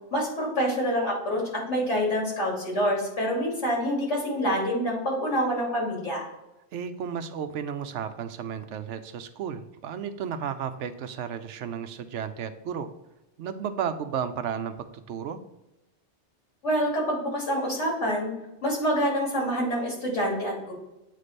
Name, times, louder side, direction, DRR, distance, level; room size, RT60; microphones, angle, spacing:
voice 1, 0.1-1.4 1.7-6.2 16.6-18.3 18.6-20.7, equal, 85° left, -3 dB, 2.9 m, -26 dB
voice 2, 6.7-12.9 13.4-14.7 15.1-15.4, right 7 dB, 85° right, 10 dB, 1.0 m, -33 dB
8.2 x 3.3 x 4.1 m, 0.95 s
omnidirectional pair, 1.2 m